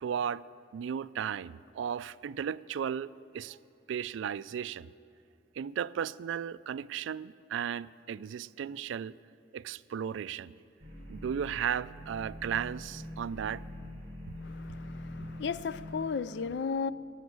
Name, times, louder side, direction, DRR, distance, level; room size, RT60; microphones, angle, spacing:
voice 1, 0.0-0.4 0.7-3.6 3.9-4.9 5.6-9.1 9.5-10.5 11.1-13.6, right 8 dB, 85° right, 0.3 m, -35 dB
sound 1, 10.8-15.9, left 1 dB, 30° right, 3.1 m, -44 dB
voice 2, 14.4-16.9, left 5 dB, 65° left, 0.4 m, -35 dB
18.5 x 7.2 x 9.3 m
head